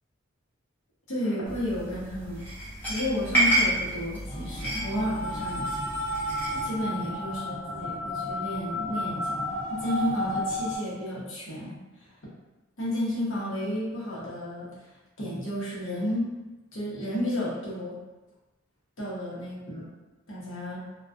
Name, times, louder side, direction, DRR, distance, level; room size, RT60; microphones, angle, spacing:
voice 1, 1.1-2.4 2.9-5.9 6.6-11.7 12.8-14.7 15.2-16.3 16.7-18.0 19.0-19.9 20.3-20.8, left 1 dB, 65° left, -7 dB, 0.8 m, -32 dB
sound 1, 1.5-6.7, right 1 dB, 10° left, 0.6 m, -30 dB
sound 2, 4.3-10.8, left 1 dB, 30° left, 1.2 m, -32 dB
2.3 x 2.2 x 2.5 m, 1.1 s
head